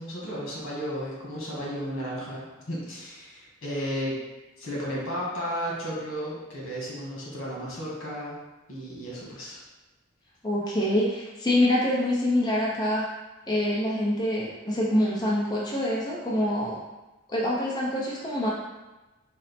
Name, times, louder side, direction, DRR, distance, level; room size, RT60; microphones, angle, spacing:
voice 1, 0.0-4.2 4.6-8.4 8.7-9.6, equal, 90° left, -5 dB, 1.4 m, -33 dB
voice 2, 10.4-13.1 13.5-16.8 17.3-18.5, left 1 dB, 20° left, -4 dB, 0.5 m, -25 dB
4.3 x 2.0 x 4.1 m, 1.1 s
head